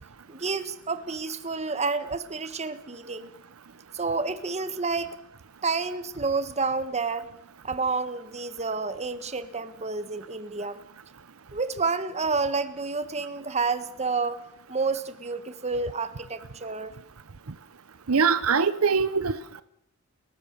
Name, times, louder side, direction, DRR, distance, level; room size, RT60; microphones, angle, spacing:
voice 1, 0.3-3.3 3.9-5.2 5.6-7.3 7.6-10.8 11.5-14.4 14.7-16.9, right 4 dB, 30° right, 1.5 m, -29 dB
voice 2, 18.1-19.6, right 5 dB, 70° right, 0.8 m, -23 dB
30.0 x 14.5 x 6.8 m
head